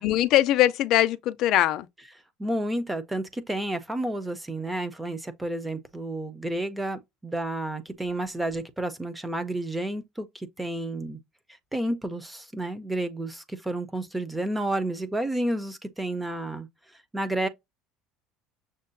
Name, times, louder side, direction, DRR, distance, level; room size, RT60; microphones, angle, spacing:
voice 1, 0.0-1.9, left 14 dB, 45° left, 0.4 m, -21 dB
voice 2, 2.4-11.2 11.7-16.7 17.1-17.5, right 1 dB, 5° right, 0.5 m, -31 dB
6.4 x 2.2 x 2.6 m
cardioid pair, 170°, 0 cm